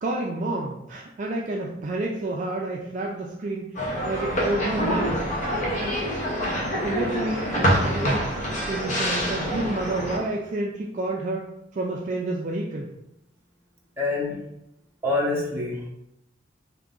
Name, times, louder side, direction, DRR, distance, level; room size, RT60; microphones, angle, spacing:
voice 1, 0.0-5.2 5.8-6.0 6.8-11.5 11.7-12.9, right 2 dB, 40° right, -1 dB, 0.4 m, -29 dB
sound 1, 3.7-10.2, equal, 40° left, 0.9 m, -26 dB
voice 2, 14.0-14.4 15.0-15.9, left 2 dB, 15° right, -4 dB, 0.9 m, -26 dB
3.8 x 2.8 x 3.7 m, 0.85 s
head